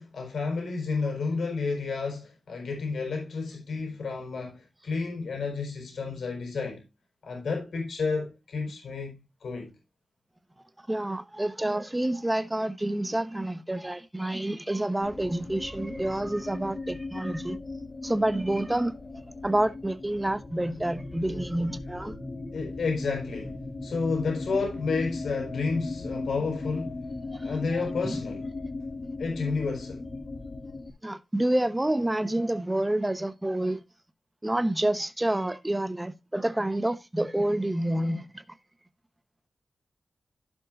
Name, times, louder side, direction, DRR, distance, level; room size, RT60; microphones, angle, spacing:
voice 1, 0.0-6.8 7.2-9.7 22.5-27.0 27.4-28.5 29.2-30.0, left 4 dB, 85° left, 4.6 m, -31 dB
voice 2, 10.9-17.6 18.0-18.9 19.4-22.2 27.3-27.5 28.0-28.2 31.0-33.8 34.4-38.4, right 1 dB, 15° right, 1.0 m, -28 dB
sound 1, 15.0-30.9, left 3 dB, 45° left, 1.5 m, -38 dB
16.0 x 5.5 x 2.6 m
wide cardioid pair, 90°, 0 cm